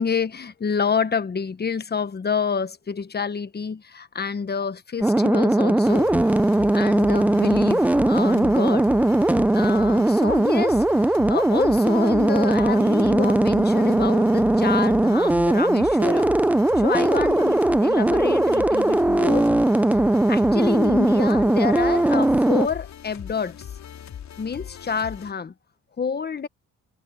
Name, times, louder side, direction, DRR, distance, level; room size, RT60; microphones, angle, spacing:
voice 1, 0.0-6.1 6.7-8.9 9.5-16.3 16.8-19.5 20.3-23.7 24.4-25.5 26.0-26.5, left 6 dB, 35° left, 1.4 m, -28 dB
sound 1, 5.0-22.7, right 1 dB, 5° right, 0.5 m, -19 dB
sound 2, 5.8-25.3, left 9 dB, 65° left, 5.3 m, -40 dB
cardioid pair, 90°, 30 cm